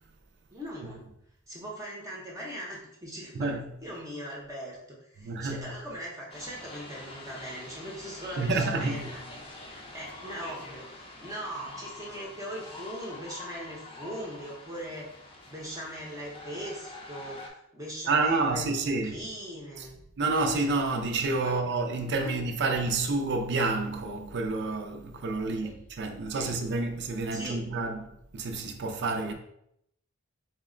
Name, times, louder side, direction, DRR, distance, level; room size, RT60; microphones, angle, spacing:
voice 1, 0.5-1.0 1.5-3.5 3.8-19.9 21.4-21.5 22.2-22.3 25.4-25.7 26.4-26.6 27.3-27.7, equal, 15° right, 0.7 m, -40 dB
voice 2, 3.3-3.7 5.2-5.7 8.4-9.1 18.1-19.2 19.8-19.9 20.2-29.3, right 3 dB, 55° right, 0.5 m, -29 dB
sound 1, 6.3-17.5, left 2 dB, 25° left, 0.6 m, -45 dB
3.9 x 2.1 x 3.7 m
head